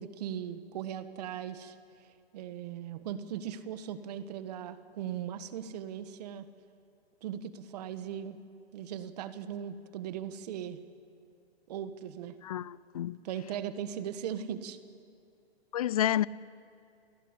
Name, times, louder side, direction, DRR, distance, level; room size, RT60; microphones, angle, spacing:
voice 1, 0.0-2.1 2.3-6.5 7.2-8.4 8.7-10.8 11.7-12.4 13.2-14.8, right 9 dB, 40° right, 1.6 m, -39 dB
voice 2, 12.4-13.2 15.7-16.3, left 11 dB, 35° left, 0.5 m, -29 dB
28.0 x 17.0 x 10.0 m
hypercardioid pair, 145°, 31 cm